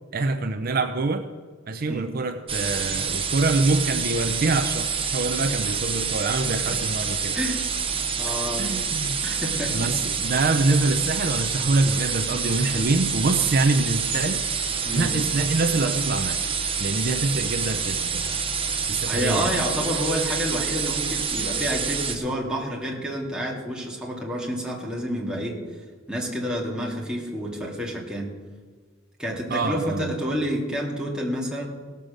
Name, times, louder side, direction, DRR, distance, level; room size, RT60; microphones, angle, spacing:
voice 1, 0.1-1.2 1.7-7.4 8.6-9.2 9.7-14.4 14.9-16.4 16.8-18.4 18.9-19.6 29.5-30.1, right 3 dB, 50° right, 8 dB, 0.6 m, -25 dB
sound 1, 2.5-22.1, right 6 dB, 25° right, 1.1 m, -27 dB
voice 2, 8.2-8.8 9.2-9.9 12.0-12.1 14.9-15.2 19.1-25.6 26.1-28.3 29.2-31.7, equal, 5° right, -3 dB, 2.1 m, -29 dB
17.0 x 6.9 x 6.3 m, 1.5 s
head